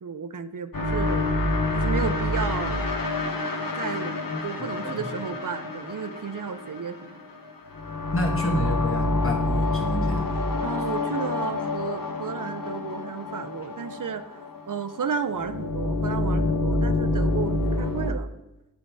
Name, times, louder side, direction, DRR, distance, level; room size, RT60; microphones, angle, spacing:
voice 1, 0.0-1.3 1.7-2.8 3.8-4.2 4.4-7.2 10.6-18.3, right 6 dB, 70° right, 11 dB, 0.5 m, -33 dB
sound 1, 0.7-18.1, left 2 dB, 85° left, 0.7 m, -27 dB
voice 2, 4.3-4.7 5.0-5.1 8.1-10.3, left 1 dB, 40° left, 1 dB, 1.2 m, -29 dB
9.8 x 3.4 x 4.4 m, 0.99 s
wide cardioid pair, 45°, 33 cm